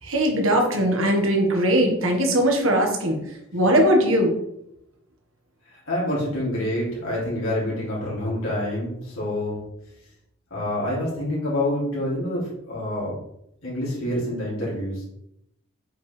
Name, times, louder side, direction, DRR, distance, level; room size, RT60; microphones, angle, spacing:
voice 1, 0.0-4.3, equal, 70° right, 2 dB, 1.6 m, -20 dB
voice 2, 5.7-9.6 10.5-13.2 13.6-15.0, left 1 dB, 85° left, -7 dB, 3.0 m, -27 dB
7.8 x 5.4 x 3.4 m, 0.79 s
head